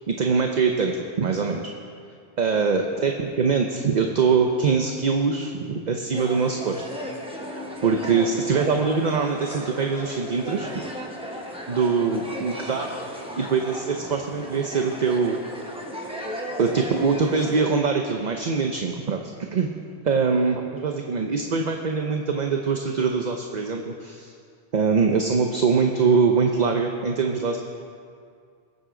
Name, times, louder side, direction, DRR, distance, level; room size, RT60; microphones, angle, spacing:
voice 1, 0.1-1.6 2.4-6.8 7.5-10.9 11.7-12.9 13.4-15.4 16.0-16.1 16.6-19.7 20.0-24.3 24.7-27.6, right 5 dB, 50° right, 3 dB, 0.8 m, -23 dB
sound 1, 6.1-17.6, equal, 5° right, 1.2 m, -36 dB
21.0 x 8.0 x 3.8 m, 2.2 s
omnidirectional pair, 1.1 m